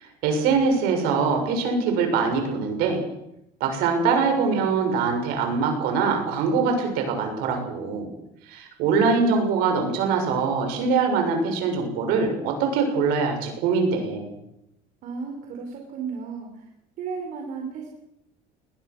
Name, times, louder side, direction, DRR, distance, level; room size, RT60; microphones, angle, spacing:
voice 1, 0.2-3.0 3.6-8.1 8.5-14.3, right 5 dB, 75° right, 4 dB, 7.1 m, -23 dB
voice 2, 15.0-16.5 17.0-17.9, right 5 dB, 55° right, 2 dB, 4.6 m, -33 dB
21.5 x 20.5 x 6.4 m, 0.82 s
cardioid pair, 145°, 16 cm